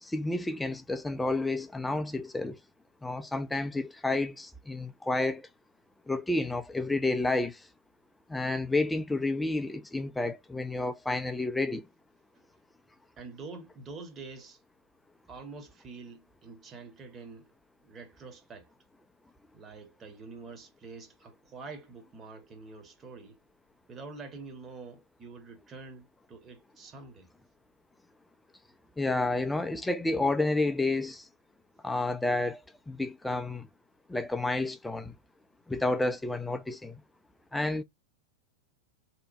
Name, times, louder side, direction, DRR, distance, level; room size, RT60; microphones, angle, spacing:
voice 1, 0.0-2.6 3.0-5.5 6.1-7.7 8.3-11.9 29.0-31.3 31.8-32.6 32.9-33.7 34.1-35.1 35.7-37.0 37.5-37.8, left 2 dB, 5° left, 0.3 m, -30 dB
voice 2, 13.2-14.6 15.3-17.5 17.8-18.7 19.5-23.4 23.9-27.3, right 4 dB, 25° right, 0.9 m, -46 dB
2.8 x 2.0 x 2.7 m
figure-of-eight pair, 90°, 0 cm